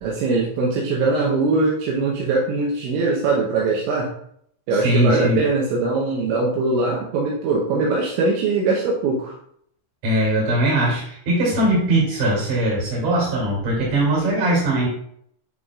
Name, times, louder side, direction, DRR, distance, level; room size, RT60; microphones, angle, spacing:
voice 1, 0.0-4.1 4.7-9.3, right 3 dB, 80° right, -3 dB, 3.2 m, -21 dB
voice 2, 4.7-5.4 10.0-14.9, right 1 dB, 50° right, -4 dB, 4.0 m, -20 dB
10.5 x 4.1 x 2.4 m, 0.67 s
omnidirectional pair, 5.4 m